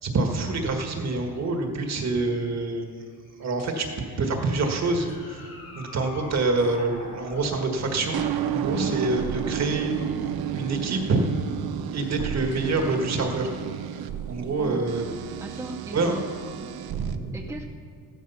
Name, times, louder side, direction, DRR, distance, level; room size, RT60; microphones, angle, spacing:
voice 1, 0.0-3.0 3.4-3.9 4.2-8.2 8.5-9.9 10.2-11.2 11.9-13.5 14.3-15.1 15.9-16.2 16.9-17.4, right 3 dB, 45° right, 3 dB, 1.6 m, -26 dB
sound 1, 0.6-1.0 2.1-2.3 3.6-4.1 5.1-5.2 6.6-6.8 9.5-9.8 11.0-11.3 12.5-12.9 14.0-14.1 15.5-15.7, left 2 dB, 60° left, 1.6 m, -49 dB
sound 2, 3.2-7.6, left 3 dB, 80° left, 4.4 m, -44 dB
sound 3, 7.8-17.2, right 9 dB, 80° right, 0.8 m, -32 dB
voice 2, 8.7-9.0 14.6-14.9 15.4-16.3 16.6-16.8 17.3-17.7, right 1 dB, 10° right, 2 dB, 0.6 m, -36 dB
15.0 x 12.0 x 5.7 m, 2.2 s
wide cardioid pair, 175°, 37 cm